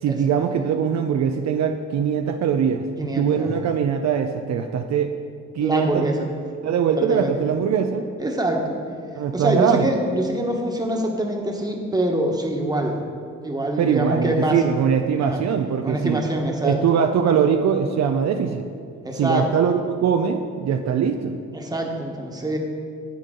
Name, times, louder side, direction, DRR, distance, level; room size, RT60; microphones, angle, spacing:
voice 1, 0.0-5.1 5.5-6.1 6.6-8.1 9.2-9.9 13.8-16.2 16.6-18.7 19.1-21.4, right 7 dB, 60° right, 5 dB, 0.6 m, -22 dB
voice 2, 3.0-3.6 5.6-6.3 7.0-7.3 8.2-8.8 9.3-12.9 13.4-14.6 15.1-15.4 15.8-16.8 19.0-19.5 21.5-22.6, right 1 dB, 15° right, 1 dB, 1.4 m, -24 dB
10.5 x 8.3 x 3.8 m, 2.3 s
cardioid pair, 90°, 30 cm